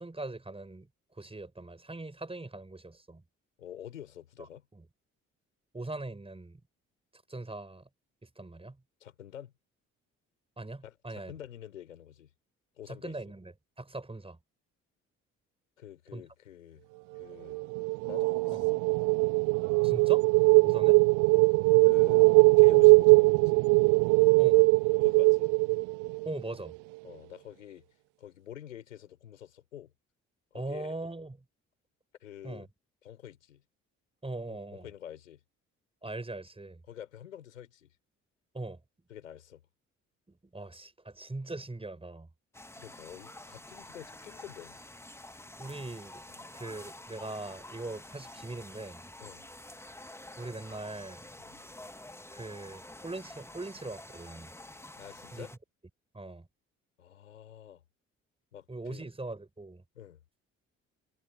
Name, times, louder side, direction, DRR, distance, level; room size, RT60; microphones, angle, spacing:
voice 1, 0.0-3.2 4.7-4.8 5.7-6.6 7.1-7.9 8.2-8.8 10.6-11.3 12.9-14.4 16.1-16.2 18.5-18.6 19.8-20.3 20.6-21.0 24.4-24.6 26.2-26.7 30.5-31.4 32.4-32.7 34.2-34.9 36.0-36.8 38.5-38.8 40.3-42.3 45.6-46.2 46.5-49.0 50.4-51.3 52.3-54.5 55.3-55.5 56.1-56.5 58.7-59.8, right 2 dB, 15° right, 4.5 m, -41 dB
voice 2, 3.6-4.7 9.0-9.5 10.8-12.3 12.8-13.2 15.8-16.8 17.1-17.6 18.0-18.8 20.6-20.8 21.4-21.5 21.8-22.2 22.6-23.6 25.0-25.5 27.0-27.8 28.2-29.9 30.5-30.9 32.2-32.7 33.0-33.6 34.5-35.4 36.9-37.9 39.1-39.6 42.8-44.7 46.3-46.4 49.2-49.4 51.4-51.6 55.0-55.5 57.0-57.8 58.5-59.1 59.9-60.2, left 10 dB, 80° left, 4.8 m, -47 dB
sound 1, 17.5-26.4, right 28 dB, 55° right, 0.5 m, -21 dB
sound 2, 42.5-55.6, left 1 dB, 5° left, 2.3 m, -49 dB
figure-of-eight pair, 45°, 38 cm